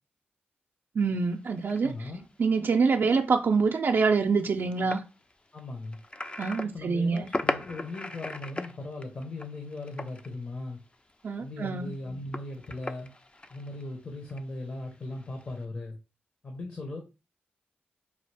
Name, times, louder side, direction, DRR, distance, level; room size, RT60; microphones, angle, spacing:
sound 1, 1.0-1.2 1.6-10.4 10.7-11.3 11.6-14.4 15.0-15.6, left 2 dB, 25° left, 0.4 m, -38 dB
voice 1, 1.0-1.9 2.4-5.0 6.4-7.3 11.2-11.9, right 4 dB, 65° right, 0.4 m, -25 dB
voice 2, 1.8-2.2 5.5-6.0 6.6-10.8 11.4-13.1 13.5-16.0 16.4-17.0, left 2 dB, 50° left, 1.1 m, -38 dB
4.7 x 2.5 x 3.4 m
cardioid pair, 55°, 4 cm